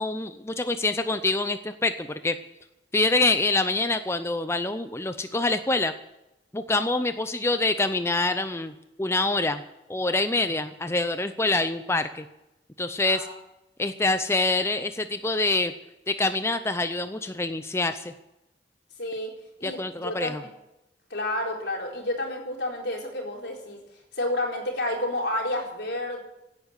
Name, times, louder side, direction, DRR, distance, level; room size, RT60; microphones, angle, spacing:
voice 1, 0.0-2.4 2.9-5.9 6.5-8.7 9.0-9.6 9.9-12.2 12.8-13.3 13.8-15.7 16.1-18.1 19.6-20.4, left 2 dB, 15° left, 9 dB, 0.6 m, -25 dB
voice 2, 13.1-13.4 19.0-19.3 19.6-20.5 21.1-23.8 24.1-26.2, left 1 dB, 75° left, 0 dB, 4.2 m, -30 dB
16.5 x 9.8 x 8.3 m, 0.93 s
head